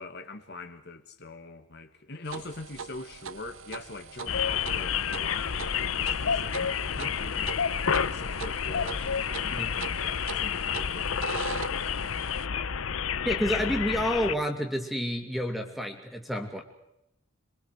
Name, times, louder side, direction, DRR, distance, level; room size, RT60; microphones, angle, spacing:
voice 1, 0.0-6.6 6.9-7.7 7.9-12.3, left 3 dB, 55° left, 1.7 m, -43 dB
sound 1, 2.2-12.5, right 6 dB, 75° right, 0.8 m, -42 dB
sound 2, 4.3-14.3, left 7 dB, 90° left, 0.8 m, -29 dB
voice 2, 6.5-7.1 9.5-9.7 13.2-16.6, equal, ahead, 2.6 m, -30 dB
27.5 x 23.5 x 4.9 m
head